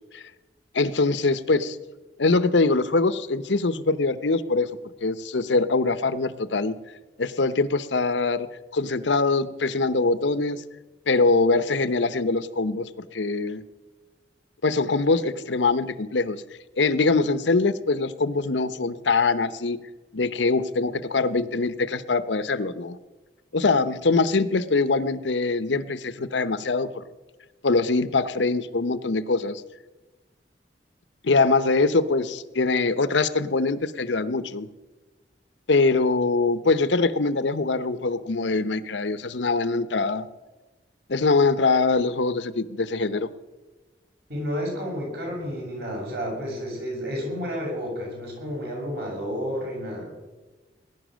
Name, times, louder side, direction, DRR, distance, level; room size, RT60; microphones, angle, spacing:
voice 1, 0.7-1.8 2.2-4.7 5.0-6.8 7.2-8.5 8.7-10.6 11.1-13.6 14.6-16.4 16.8-19.8 20.1-23.0 23.5-26.9 27.6-29.6 31.2-34.7 35.7-40.3 41.1-43.3, left 3 dB, 85° left, 14 dB, 0.8 m, -23 dB
voice 2, 44.3-50.1, equal, 60° right, -1 dB, 6.9 m, -31 dB
19.5 x 11.0 x 6.3 m, 1.2 s
head